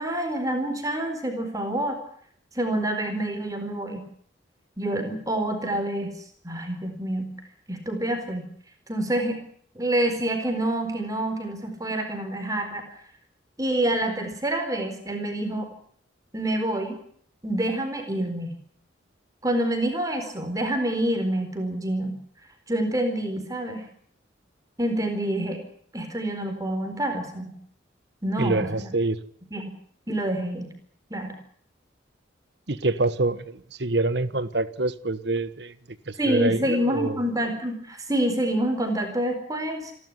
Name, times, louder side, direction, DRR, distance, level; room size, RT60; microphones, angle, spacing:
voice 1, 0.0-2.0 2.5-4.0 4.8-6.2 6.4-7.4 7.7-8.5 8.9-9.4 9.7-12.8 13.6-15.7 16.3-17.0 17.4-18.5 19.4-22.1 22.7-23.8 24.8-25.6 25.9-27.5 28.2-28.9 29.5-29.7 30.1-30.7 31.1-31.4 36.2-39.9, right 1 dB, 20° right, 4.3 m, -27 dB
voice 2, 28.4-29.2 32.7-35.7 36.1-37.2, right 2 dB, 60° right, 1.5 m, -26 dB
29.5 x 12.0 x 9.9 m
head